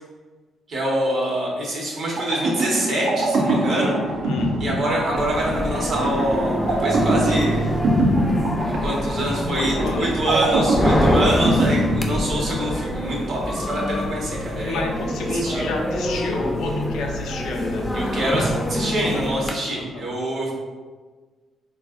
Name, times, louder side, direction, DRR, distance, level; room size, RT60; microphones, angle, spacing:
voice 1, 0.7-3.9 4.6-7.7 8.6-14.8 15.2-15.7 17.9-20.5, right 1 dB, 60° right, -3 dB, 0.9 m, -25 dB
sound 1, 2.1-12.8, right 1 dB, 80° right, 0.5 m, -24 dB
sound 2, 5.2-19.5, equal, 15° left, 0.4 m, -26 dB
voice 2, 9.5-10.1 14.6-17.8 19.6-20.1, left 3 dB, 85° left, 1 dB, 0.4 m, -30 dB
3.5 x 2.3 x 2.3 m, 1.4 s
cardioid pair, 90°, 0 cm